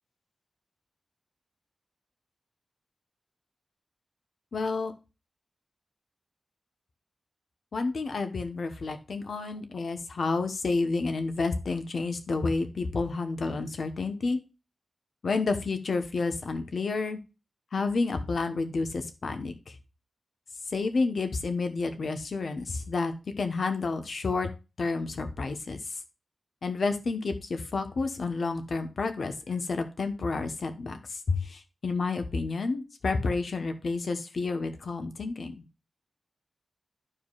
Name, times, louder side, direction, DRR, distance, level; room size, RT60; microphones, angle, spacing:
voice 1, 4.5-4.9 7.7-14.4 15.2-17.2 17.7-19.7 20.7-24.5 24.8-26.0 26.6-35.5, left 3 dB, 65° left, 7 dB, 1.1 m, -30 dB
13.0 x 4.6 x 2.4 m, 0.29 s
wide cardioid pair, 120°, 0 cm